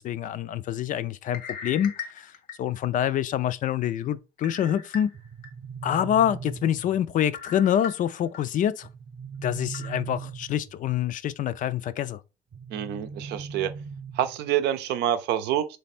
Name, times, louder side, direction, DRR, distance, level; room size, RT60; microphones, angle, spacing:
voice 1, 0.0-2.3 2.6-5.1 5.8-8.9 9.4-12.2, left 10 dB, 50° left, 0.4 m, -26 dB
sound 1, 1.3-3.0 3.5-3.6 4.4-5.5 5.9-6.0 7.3-8.4 8.8-8.9 9.7-10.0, left 6 dB, 85° left, 1.1 m, -39 dB
sound 2, 5.1-7.1 8.8-10.9 12.5-14.5, right 6 dB, 40° right, 0.8 m, -39 dB
voice 2, 12.7-13.7 14.1-15.8, right 11 dB, 80° right, 0.6 m, -27 dB
3.4 x 3.3 x 4.2 m
cardioid pair, 110°, 17 cm